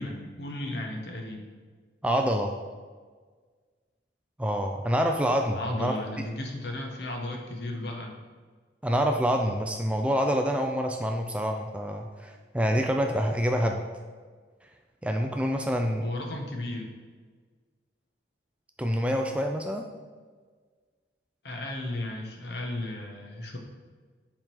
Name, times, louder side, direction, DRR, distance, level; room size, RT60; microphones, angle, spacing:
voice 1, 0.0-1.4 5.5-8.2 16.0-16.9 21.4-23.6, left 1 dB, 60° left, 2 dB, 1.0 m, -34 dB
voice 2, 2.0-2.5 4.4-6.0 8.8-13.8 15.0-16.1 18.8-19.9, equal, 5° right, 3 dB, 0.3 m, -26 dB
7.2 x 3.8 x 4.6 m, 1.5 s
head